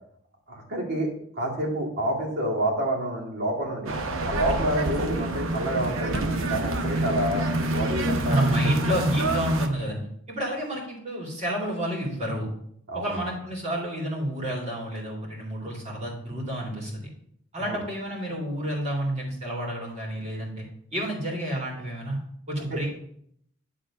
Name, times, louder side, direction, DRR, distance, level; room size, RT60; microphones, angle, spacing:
voice 1, 0.5-1.1 1.4-3.9 4.2-8.6 8.9-9.0 12.9-13.2 17.6-17.8 22.6-22.8, right 1 dB, 55° right, -3 dB, 2.2 m, -28 dB
sound 1, 3.9-9.7, right 2 dB, 80° right, 0.8 m, -27 dB
voice 2, 8.3-10.0 10.3-12.5 12.9-17.1 17.5-20.6 20.9-22.2 22.5-22.9, equal, 35° right, -3 dB, 2.4 m, -29 dB
9.3 x 3.7 x 4.9 m, 0.68 s
head